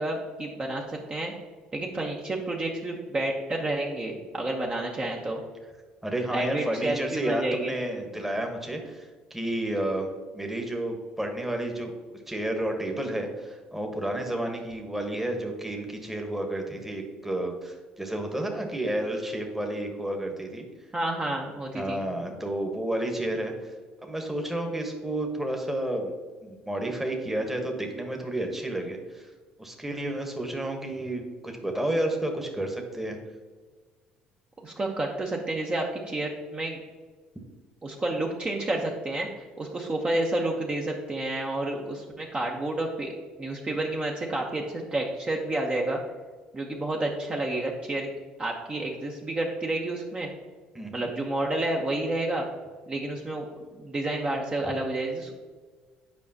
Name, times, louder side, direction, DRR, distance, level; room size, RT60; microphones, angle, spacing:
voice 1, 0.0-1.3 1.7-5.4 6.3-7.7 20.9-22.0 34.6-36.8 37.8-43.1 43.4-46.0 46.5-48.1 48.4-50.3 50.9-52.5 52.9-53.5 53.7-55.3, right 2 dB, 30° right, 0 dB, 0.9 m, -30 dB
voice 2, 6.0-20.7 21.7-23.7 24.0-26.1 26.4-29.3 29.6-33.2 50.7-51.1, right 1 dB, 5° right, 3 dB, 1.2 m, -31 dB
7.4 x 4.9 x 2.8 m, 1.4 s
hypercardioid pair, 70°, 4 cm